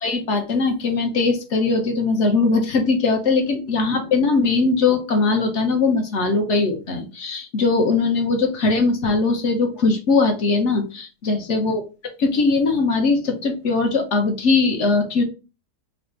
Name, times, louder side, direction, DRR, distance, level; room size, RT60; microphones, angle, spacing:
voice 1, 0.0-11.8 12.2-15.2, left 3 dB, 55° left, 5 dB, 1.0 m, -20 dB
3.2 x 2.7 x 4.4 m, 0.32 s
omnidirectional pair, 1.7 m